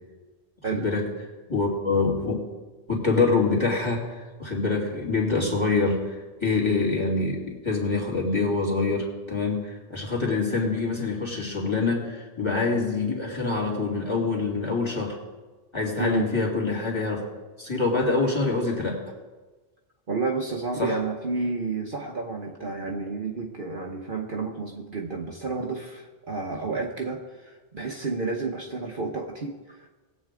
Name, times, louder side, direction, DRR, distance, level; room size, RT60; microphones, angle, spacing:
voice 1, 0.7-1.1 1.5-2.4 2.9-15.2 15.7-17.2 17.6-19.1 20.8-21.0, left 3 dB, 20° left, -2 dB, 2.7 m, -25 dB
voice 2, 16.0-16.3 20.1-29.9, right 4 dB, 45° right, 1 dB, 1.0 m, -31 dB
20.0 x 8.4 x 3.7 m, 1.2 s
omnidirectional pair, 1.3 m